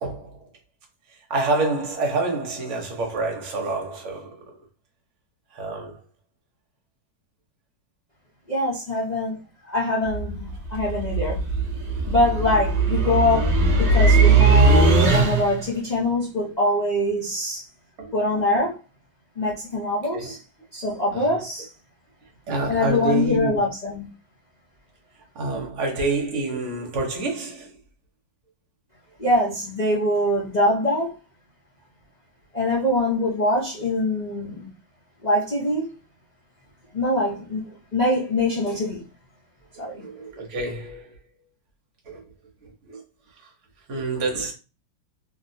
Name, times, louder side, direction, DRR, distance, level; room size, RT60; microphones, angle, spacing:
voice 1, 0.0-0.4 1.3-4.4 5.5-6.0 18.0-18.1 20.1-20.3 21.1-21.4 22.5-23.6 25.3-27.7 39.8-41.1 42.1-42.2 42.6-43.0 43.9-44.5, right 3 dB, 50° right, 1.0 m, -27 dB
voice 2, 8.5-9.4 9.7-11.4 12.1-17.6 18.1-18.8 19.4-20.4 20.7-21.7 22.7-24.1 29.2-31.1 32.5-34.7 35.2-35.9 36.9-39.0 39.8-40.0, left 1 dB, 50° left, 0.4 m, -23 dB
sound 1, 10.0-15.7, right 3 dB, 85° right, 0.6 m, -19 dB
3.0 x 2.7 x 2.6 m
omnidirectional pair, 2.1 m